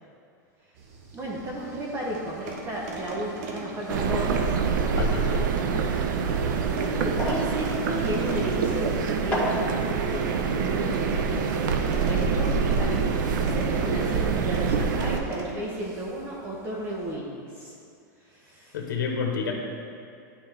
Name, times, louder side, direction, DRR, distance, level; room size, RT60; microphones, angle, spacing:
sound 1, 0.7-17.2, right 3 dB, 55° right, 1.1 m, -42 dB
voice 1, 1.1-5.4 6.8-11.6 12.1-17.7 18.2-18.8, right 1 dB, 20° right, -4 dB, 0.8 m, -34 dB
sound 2, 3.9-15.2, right 5 dB, 75° right, 0.6 m, -25 dB
voice 2, 5.0-5.4 18.7-19.5, left 6 dB, 85° left, 1 dB, 1.2 m, -29 dB
sound 3, 7.0-12.3 12.5-12.8, equal, 10° left, 1.6 m, -36 dB
11.5 x 4.4 x 3.3 m, 2.5 s
supercardioid pair, 155°, 10 cm